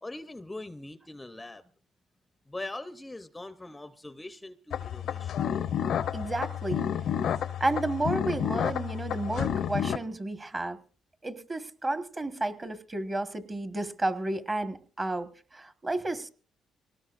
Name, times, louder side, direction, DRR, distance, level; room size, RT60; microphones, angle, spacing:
voice 1, 0.0-1.6 2.5-5.4, left 2 dB, 15° left, 11 dB, 0.6 m, -41 dB
sound 1, 4.7-10.0, left 9 dB, 70° left, 0.6 m, -30 dB
voice 2, 6.1-6.8 7.6-10.8 11.2-16.3, right 2 dB, 25° right, 9 dB, 1.4 m, -32 dB
23.5 x 18.5 x 2.5 m, 0.42 s
cardioid pair, 90°, 0 cm